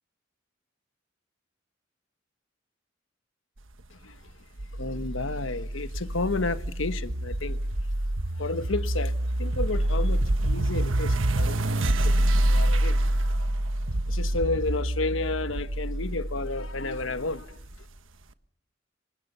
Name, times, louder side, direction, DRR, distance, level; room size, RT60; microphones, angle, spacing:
sound 1, 4.6-17.8, right 1 dB, 90° right, 1.3 m, -27 dB
voice 1, 4.7-7.6 8.4-11.6 11.8-12.2 12.4-13.0 14.1-17.6, left 3 dB, 90° left, 1.3 m, -32 dB
25.5 x 25.5 x 5.6 m
head